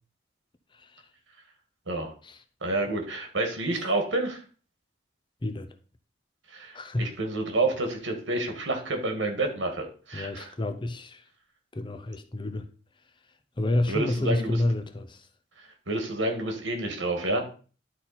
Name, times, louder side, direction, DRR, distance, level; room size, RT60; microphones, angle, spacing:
voice 1, 2.6-4.4 6.5-10.5 13.9-14.6 15.9-17.5, right 2 dB, 85° right, 2.0 m, -29 dB
voice 2, 5.4-5.7 6.7-7.1 10.1-11.2 11.7-12.7 13.6-15.3, left 1 dB, 25° left, 0.7 m, -29 dB
11.5 x 4.1 x 4.3 m
head